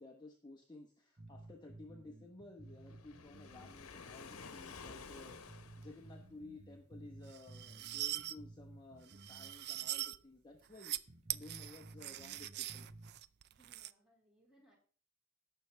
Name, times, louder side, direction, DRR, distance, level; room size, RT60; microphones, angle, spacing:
voice 1, 0.0-12.9, left 2 dB, 20° left, 1 dB, 1.1 m, -55 dB
sound 1, 1.2-3.8 4.1-4.2 4.8-4.9 5.3-9.6 9.8-9.9 10.5-10.6 11.1-13.1, right 2 dB, 35° right, 1.4 m, -55 dB
Waves surf, 2.8-6.3, left 5 dB, 85° left, 1.0 m, -52 dB
sound 2, 7.3-8.3 9.1-10.2 10.6-11.0 11.3-13.9, right 14 dB, 50° right, 0.4 m, -42 dB
voice 2, 13.5-14.8, right 1 dB, 5° right, -3 dB, 4.1 m, -69 dB
17.5 x 6.8 x 3.4 m, 0.40 s
head